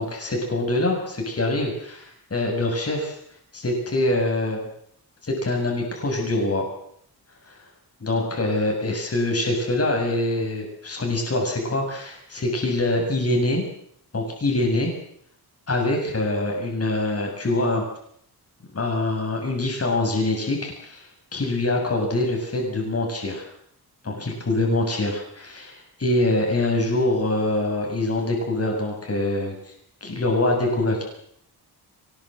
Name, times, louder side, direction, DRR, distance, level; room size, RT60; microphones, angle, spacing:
voice 1, 0.0-3.2 3.5-4.6 5.2-6.7 7.5-7.6 8.0-13.7 14.1-14.9 15.7-17.8 18.7-23.5 24.0-29.7 30.0-31.0, left 2 dB, 40° left, 1 dB, 7.2 m, -24 dB
23.0 x 20.5 x 7.7 m, 0.68 s
cardioid pair, 100°, 39 cm